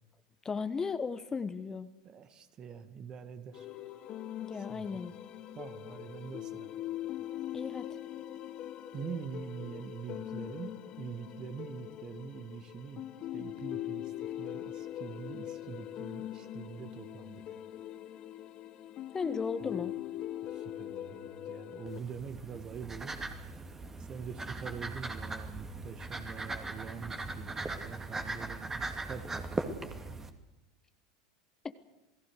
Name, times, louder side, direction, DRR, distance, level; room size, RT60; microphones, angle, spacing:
voice 1, 0.4-1.9 4.4-5.1 7.5-8.0 19.1-19.9 31.6-31.8, left 5 dB, 20° left, 12 dB, 1.2 m, -35 dB
voice 2, 2.0-3.7 4.7-4.9 5.5-6.7 8.9-10.7 11.0-13.0 13.3-17.4 19.7-19.8 20.4-23.2 24.1-30.2, right 7 dB, 35° right, 10 dB, 2.1 m, -44 dB
sound 1, 3.5-22.0, left 12 dB, 40° left, 1.4 m, -42 dB
sound 2, 21.9-30.3, right 3 dB, 15° right, 2.4 m, -39 dB
28.0 x 18.5 x 6.6 m, 1.0 s
figure-of-eight pair, 80°, 2 cm